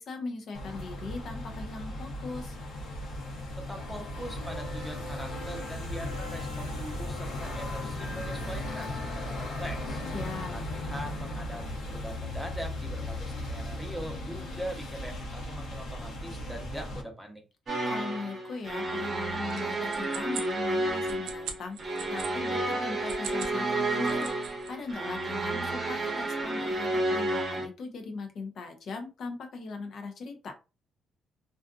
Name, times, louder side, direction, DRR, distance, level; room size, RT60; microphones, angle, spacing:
voice 1, 0.0-2.6 10.1-10.6 17.9-30.5, left 3 dB, 65° left, 5 dB, 0.6 m, -39 dB
sound 1, 0.5-17.0, left 1 dB, 85° left, 0.9 m, -36 dB
voice 2, 3.6-10.0 10.5-17.4, equal, ahead, 2 dB, 0.7 m, -42 dB
sound 2, 17.7-27.7, right 2 dB, 40° right, 0.9 m, -31 dB
sound 3, 19.5-22.3 22.9-23.6 23.9-24.7, right 7 dB, 90° right, 0.4 m, -41 dB
2.5 x 2.4 x 2.4 m, 0.30 s
cardioid pair, 90°, 0 cm